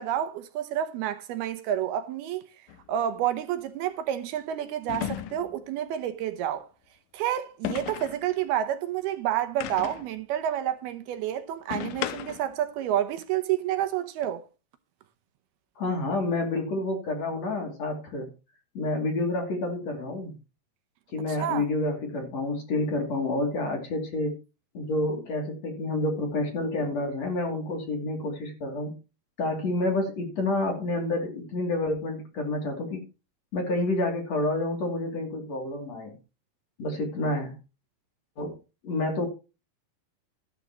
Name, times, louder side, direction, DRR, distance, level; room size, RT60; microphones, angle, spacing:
voice 1, 0.0-2.4 2.9-6.7 7.1-14.4 21.3-21.7, right 11 dB, 75° right, 2.7 m, -29 dB
sound 1, 2.7-2.8 4.9-5.6 7.6-8.2 9.6-10.1 11.7-12.5, left 11 dB, 85° left, 1.9 m, -34 dB
voice 2, 15.8-18.3 18.8-20.3 21.1-24.3 24.7-28.9 29.4-33.0 33.5-36.2 36.8-37.5 38.4-38.5 38.8-39.3, left 2 dB, 45° left, 3.6 m, -29 dB
13.0 x 12.5 x 3.0 m
omnidirectional pair, 4.8 m